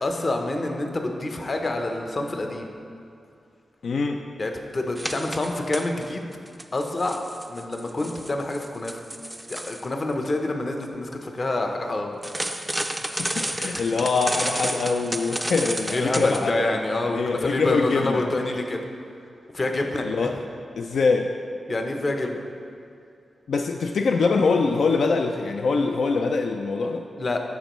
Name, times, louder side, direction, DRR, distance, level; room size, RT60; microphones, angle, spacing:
voice 1, 0.0-2.7 4.4-6.3 6.7-7.2 7.5-9.0 9.5-12.2 15.9-18.8 19.5-20.3 21.7-22.4 27.2-27.4, left 2 dB, 40° left, 3 dB, 0.7 m, -27 dB
voice 2, 3.8-4.2 13.0-16.8 17.1-18.3 20.0-20.4 20.8-21.4 23.5-27.0, left 4 dB, 75° left, 4 dB, 0.3 m, -24 dB
sound 1, 5.0-6.1 6.5-9.8 12.2-16.5, right 1 dB, 10° right, 0.3 m, -31 dB
12.0 x 4.5 x 3.0 m, 2.5 s
wide cardioid pair, 90°, 0 cm